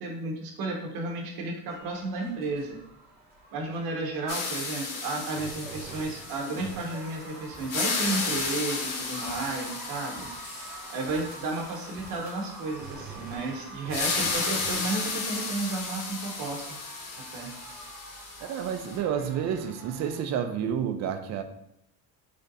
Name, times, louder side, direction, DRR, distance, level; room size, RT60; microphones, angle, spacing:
voice 1, 0.0-2.8 3.5-10.3 10.9-16.8 17.3-17.5, right 2 dB, 70° right, 0 dB, 0.8 m, -33 dB
sound 1, 1.7-20.2, right 2 dB, 25° right, 1.0 m, -45 dB
sound 2, 4.3-7.2 7.5-12.4 13.9-19.0, left 4 dB, 60° left, 1.0 m, -34 dB
voice 2, 18.5-21.4, right 8 dB, 50° right, 8 dB, 0.4 m, -30 dB
3.3 x 2.6 x 3.8 m, 0.80 s
cardioid pair, 145°, 37 cm